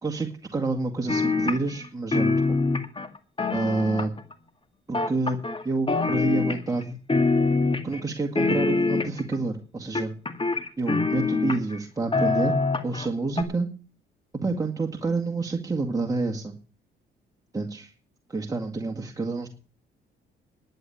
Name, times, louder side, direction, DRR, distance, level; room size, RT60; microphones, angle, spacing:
voice 1, 0.0-2.4 3.5-4.1 4.9-5.4 5.6-7.0 7.8-10.1 10.8-12.5 12.8-13.7 14.4-16.5 17.5-17.9 18.3-19.5, right 3 dB, 15° right, 2 dB, 2.0 m, -28 dB
sound 1, 1.1-1.9 2.1-4.3 4.9-5.6 5.9-6.8 7.1-8.0 8.4-9.4 10.0-11.8 12.1-13.1 13.4-13.5, left 3 dB, 25° left, 2.1 m, -24 dB
11.0 x 9.2 x 7.1 m, 0.38 s
cardioid pair, 90°, 20 cm